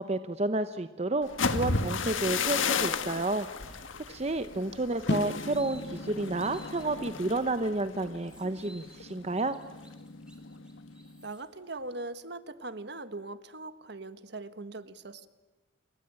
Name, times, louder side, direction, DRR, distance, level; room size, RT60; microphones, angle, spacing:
voice 1, 0.0-9.6, right 2 dB, 35° right, 10 dB, 0.8 m, -31 dB
sound 1, 1.2-9.1 9.4-9.8 10.1-10.5, left 5 dB, 85° left, 1.7 m, -34 dB
voice 2, 4.9-5.4 11.2-15.3, right 2 dB, 60° right, 12 dB, 1.6 m, -41 dB
sound 2, 5.1-11.3, left 2 dB, 60° left, 0.9 m, -40 dB
sound 3, 5.1-6.9 7.4-7.5 7.8-11.4, right 1 dB, 5° right, 3.9 m, -56 dB
28.5 x 22.0 x 8.9 m, 1.3 s
head